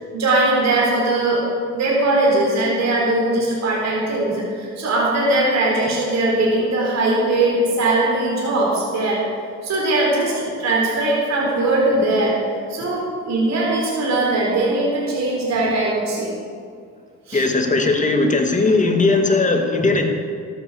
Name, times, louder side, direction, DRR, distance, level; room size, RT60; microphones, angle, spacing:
voice 1, 0.1-1.4 1.7-9.2 9.6-12.4 12.7-16.3 17.3-17.5, right 2 dB, 60° right, -3 dB, 4.2 m, -20 dB
voice 2, 17.3-20.0, left 3 dB, 25° left, 4 dB, 2.0 m, -18 dB
13.5 x 9.6 x 6.9 m, 2.2 s
cardioid pair, 90°, 30 cm